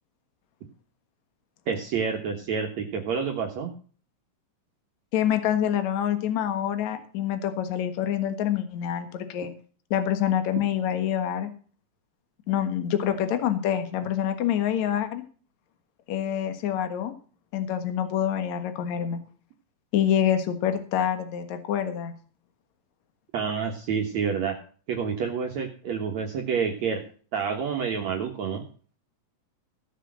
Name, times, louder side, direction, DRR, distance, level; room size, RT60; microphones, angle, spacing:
voice 1, 1.7-3.7 23.3-24.5 24.9-27.0 27.3-28.6, right 6 dB, 60° right, 2 dB, 2.4 m, -28 dB
voice 2, 5.1-9.5 9.9-11.5 12.5-15.2 16.1-17.1 17.5-19.2 19.9-22.1, left 10 dB, 60° left, 8 dB, 2.6 m, -26 dB
16.0 x 6.7 x 6.3 m, 0.41 s
omnidirectional pair, 4.0 m